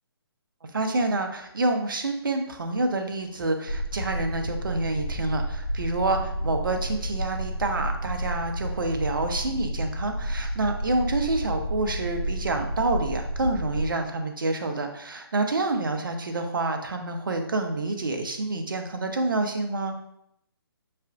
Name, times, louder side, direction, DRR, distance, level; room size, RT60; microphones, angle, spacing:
voice 1, 0.7-20.0, right 2 dB, 55° right, 5 dB, 0.6 m, -28 dB
sound 1, 3.7-13.9, equal, 70° left, 0.5 m, -31 dB
6.3 x 2.5 x 2.3 m, 0.76 s
figure-of-eight pair, 140°, 13 cm